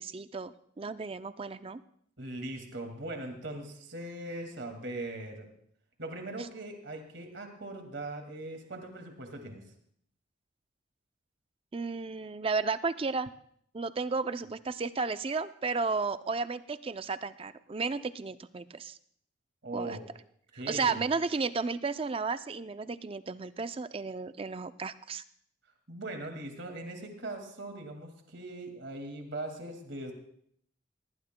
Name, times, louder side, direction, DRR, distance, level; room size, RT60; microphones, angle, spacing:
voice 1, 0.0-1.8 11.7-13.3 13.7-19.0 19.7-20.0 20.7-25.2, right 4 dB, 30° right, 12 dB, 0.4 m, -33 dB
voice 2, 2.2-5.5 6.0-9.6 19.6-20.0 20.5-21.0 25.9-30.1, right 2 dB, 60° right, 4 dB, 2.1 m, -40 dB
19.5 x 18.5 x 2.2 m, 0.66 s
head